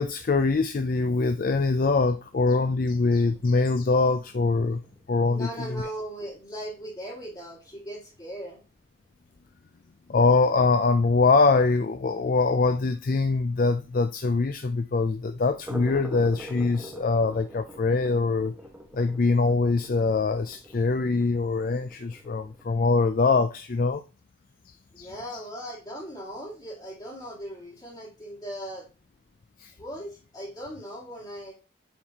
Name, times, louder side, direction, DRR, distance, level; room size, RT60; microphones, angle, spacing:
voice 1, 0.0-4.8 5.1-5.8 10.1-18.5 18.9-24.0 25.0-25.1 29.6-29.7, left 3 dB, 45° left, 0.4 m, -23 dB
sound 1, 3.2-9.1 9.4-9.5 9.9-10.0 10.4-10.5 10.8-10.9 13.7-13.8 15.3-22.7, equal, 5° right, 1.2 m, -46 dB
voice 2, 5.3-8.6 24.9-28.9 29.8-31.5, equal, 20° left, 2.3 m, -38 dB
8.5 x 4.4 x 2.9 m
head